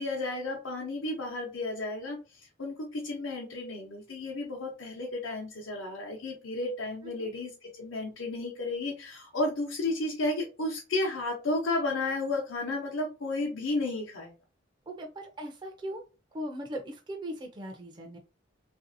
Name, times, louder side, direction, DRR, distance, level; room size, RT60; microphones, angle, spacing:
voice 1, 0.0-14.3, left 2 dB, 85° left, -2 dB, 0.8 m, -33 dB
voice 2, 14.9-16.0 16.3-18.2, equal, 20° right, 2 dB, 0.3 m, -39 dB
3.2 x 2.6 x 2.5 m, 0.32 s
head